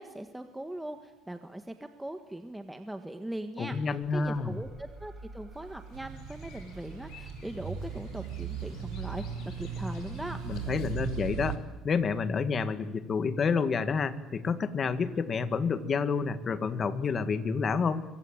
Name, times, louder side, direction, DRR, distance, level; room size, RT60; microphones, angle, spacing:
voice 1, 0.0-9.2 9.6-10.4, right 1 dB, 5° right, 7 dB, 1.6 m, -40 dB
voice 2, 3.6-4.6 10.4-18.1, left 5 dB, 35° left, 11 dB, 1.9 m, -29 dB
sound 1, 3.9-13.1, right 2 dB, 30° right, 6.4 m, -53 dB
sound 2, 5.5-11.3, left 7 dB, 65° left, 5.9 m, -56 dB
sound 3, 5.9-11.6, right 7 dB, 85° right, 3.5 m, -38 dB
25.0 x 23.5 x 8.9 m, 1.1 s
cardioid pair, 135°, 0 cm